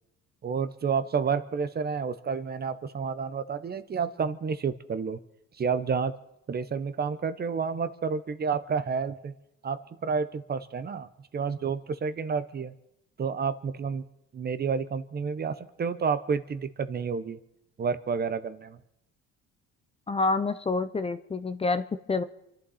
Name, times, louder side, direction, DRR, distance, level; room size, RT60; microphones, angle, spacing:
voice 1, 0.4-5.2 5.6-6.1 6.5-9.3 9.6-12.7 13.2-14.0 14.3-17.4 17.8-18.8, right 6 dB, 30° right, 13 dB, 0.9 m, -30 dB
voice 2, 20.1-22.2, left 3 dB, 20° left, 11 dB, 0.7 m, -28 dB
27.5 x 11.5 x 4.2 m, 0.85 s
cardioid pair, 125°, 30 cm